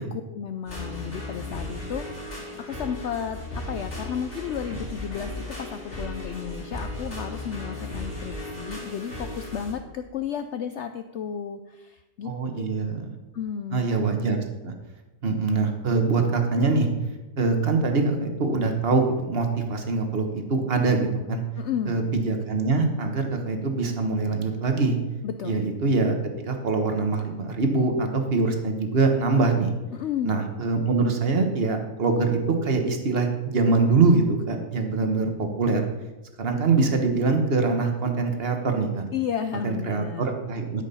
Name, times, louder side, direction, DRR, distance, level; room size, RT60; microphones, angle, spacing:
voice 1, 0.0-12.8 13.3-13.9 21.6-22.0 25.2-25.6 29.9-30.4 39.1-40.2, left 8 dB, 85° left, 8 dB, 0.6 m, -33 dB
sound 1, 0.7-9.7, left 1 dB, 35° left, 3.2 m, -36 dB
voice 2, 12.2-13.1 13.7-14.4 14.6-14.7 15.2-16.9 17.4-21.4 21.9-25.0 25.4-26.2 26.5-29.7 30.2-35.8 36.4-39.0 39.6-40.8, right 3 dB, 40° right, 4 dB, 1.3 m, -23 dB
12.5 x 5.2 x 5.6 m, 1.1 s
omnidirectional pair, 1.7 m